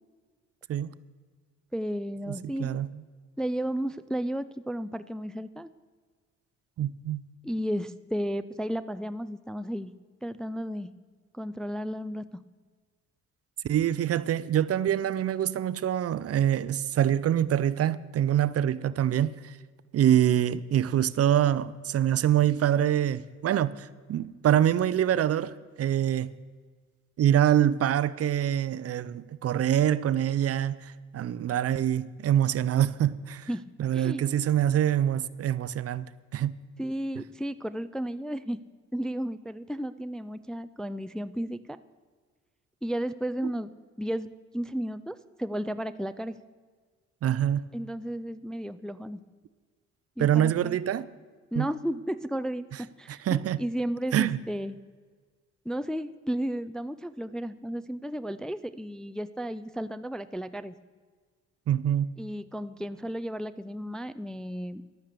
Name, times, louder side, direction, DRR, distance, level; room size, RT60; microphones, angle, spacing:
voice 1, 1.7-2.8 3.4-5.7 7.4-9.9 10.2-10.9 11.3-12.4 33.5-34.2 36.8-38.6 38.9-41.8 42.8-46.4 47.7-49.2 50.2-50.8 51.5-54.8 55.7-60.7 62.2-64.8, equal, ahead, 0.4 m, -33 dB
voice 2, 2.3-2.9 6.8-7.2 13.6-19.6 19.9-26.3 27.2-33.5 33.8-36.1 36.3-36.5 47.2-47.6 50.2-51.1 51.5-51.7 53.1-53.6 54.1-54.4 61.7-62.1, right 10 dB, 50° right, 0.5 m, -25 dB
12.0 x 9.1 x 6.7 m
cardioid pair, 90°, 30 cm